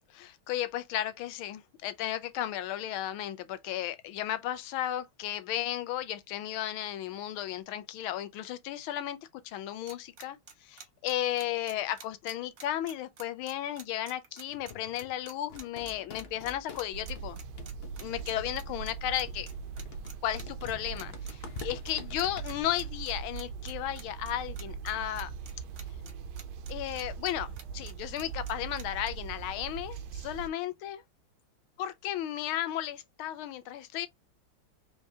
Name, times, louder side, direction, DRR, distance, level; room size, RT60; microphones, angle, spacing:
voice 1, 0.1-9.2 9.4-17.4 18.0-19.5 20.2-25.3 26.7-31.0 31.8-34.1, left 12 dB, 85° left, 1.5 m, -34 dB
sound 1, 9.9-29.1, right 6 dB, 50° right, 1.2 m, -48 dB
sound 2, 14.5-22.6, left 6 dB, 65° left, 0.6 m, -48 dB
sound 3, 16.9-30.5, right 6 dB, 80° right, 1.5 m, -41 dB
4.3 x 3.5 x 2.7 m
omnidirectional pair, 2.3 m